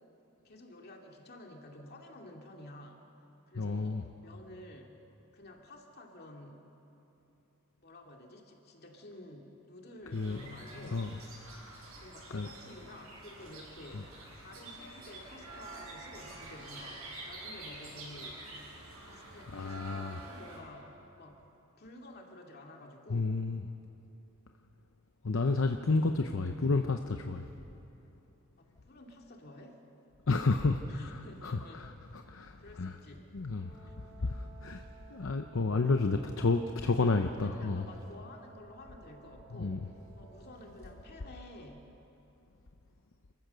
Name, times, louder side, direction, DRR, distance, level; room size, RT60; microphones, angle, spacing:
voice 1, 0.4-3.0 3.5-5.0 5.3-6.7 7.8-11.0 12.0-18.5 19.1-21.4 21.8-23.3 25.9-26.3 28.6-29.8 30.3-31.8 32.6-33.2 33.8-34.3 36.1-36.5 36.8-39.8 40.2-41.9, left 1 dB, 45° left, 1 dB, 2.4 m, -51 dB
voice 2, 3.5-4.0 10.1-11.2 12.3-12.5 13.9-14.0 19.5-20.2 23.1-23.7 25.2-27.5 30.3-33.0 33.3-37.9 39.5-39.9, left 3 dB, 65° left, 6 dB, 0.7 m, -31 dB
sound 1, 10.1-20.6, right 2 dB, 75° right, 7.1 m, -48 dB
Brass instrument, 33.5-41.5, right 7 dB, 40° right, 4.2 m, -58 dB
28.0 x 15.5 x 6.8 m, 2.9 s
head